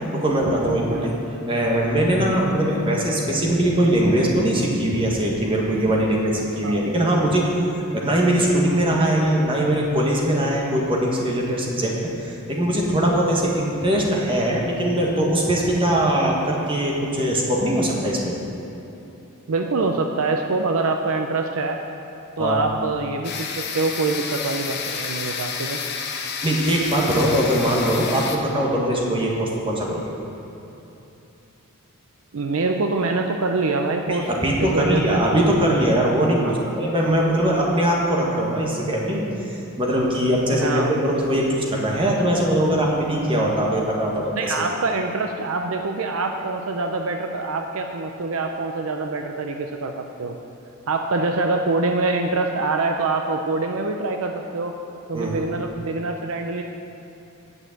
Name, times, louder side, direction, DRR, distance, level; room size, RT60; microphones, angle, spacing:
voice 1, 0.1-1.1 1.5-7.5 7.9-18.3 22.4-22.6 26.4-30.1 34.1-44.5 55.1-55.5, right 1 dB, 25° right, -2 dB, 1.5 m, -21 dB
voice 2, 19.5-21.8 22.4-25.8 29.0-29.2 32.3-35.2 36.4-36.6 40.5-40.9 44.3-50.4 50.9-54.7 55.1-56.6, right 3 dB, 65° right, 4 dB, 0.5 m, -25 dB
sound 1, 23.2-28.4, left 5 dB, 50° left, 0.9 m, -30 dB
8.8 x 6.5 x 7.9 m, 2.9 s
head